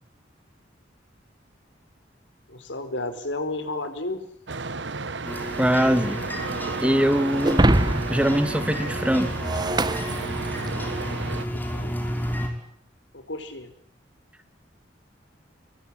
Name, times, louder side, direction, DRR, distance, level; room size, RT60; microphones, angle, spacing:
voice 1, 2.5-4.2 11.3-11.9 13.1-13.7, left 2 dB, 85° left, 9 dB, 4.9 m, -32 dB
sound 1, 4.5-11.5, right 4 dB, 70° right, 1.2 m, -33 dB
sound 2, 5.2-12.5, equal, 10° left, 5.8 m, -32 dB
voice 2, 5.6-6.2 6.8-7.7 8.1-9.4, equal, 5° right, 10 dB, 2.0 m, -22 dB
Shatter, 7.4-10.9, right 1 dB, 25° right, 1.3 m, -25 dB
26.5 x 22.5 x 8.9 m, 0.70 s
head